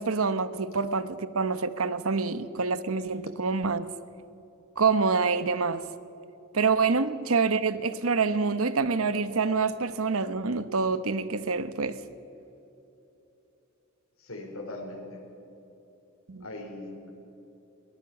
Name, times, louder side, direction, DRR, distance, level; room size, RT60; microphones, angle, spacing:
voice 1, 0.0-3.9 4.8-5.9 6.5-12.0 16.3-16.4, right 4 dB, 85° right, 1.0 m, -26 dB
voice 2, 14.2-15.2 16.4-17.1, left 2 dB, 80° left, 5.0 m, -40 dB
22.0 x 18.5 x 7.2 m
head